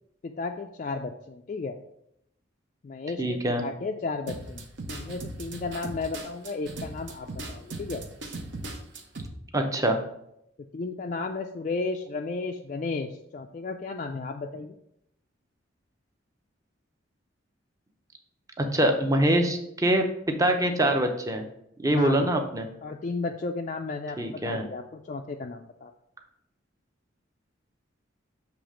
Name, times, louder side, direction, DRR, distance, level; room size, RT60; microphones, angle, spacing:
voice 1, 0.2-1.7 2.8-4.6 4.9-8.0 10.6-14.7 21.8-22.4 22.8-25.9, left 3 dB, 40° left, 3 dB, 0.3 m, -34 dB
voice 2, 3.2-3.6 9.5-10.0 18.6-21.4 21.8-22.7 24.2-24.6, right 1 dB, 15° right, 4 dB, 0.6 m, -24 dB
sound 1, 4.3-9.3, right 2 dB, 65° right, 0.9 m, -38 dB
6.9 x 3.2 x 4.9 m, 0.78 s
head